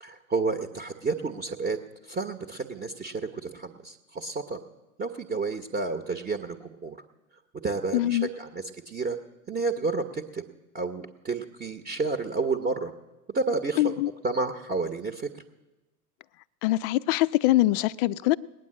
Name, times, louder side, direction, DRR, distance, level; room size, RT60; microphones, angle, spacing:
voice 1, 0.0-4.6 5.0-7.0 7.6-9.2 9.5-10.4 10.7-12.9 13.3-13.9 14.2-15.4, right 3 dB, 15° right, 5 dB, 1.0 m, -30 dB
voice 2, 7.9-8.3 13.8-14.1 16.6-18.4, left 17 dB, 40° left, 18 dB, 0.5 m, -23 dB
19.5 x 9.4 x 7.7 m, 1.1 s
hypercardioid pair, 95°, 46 cm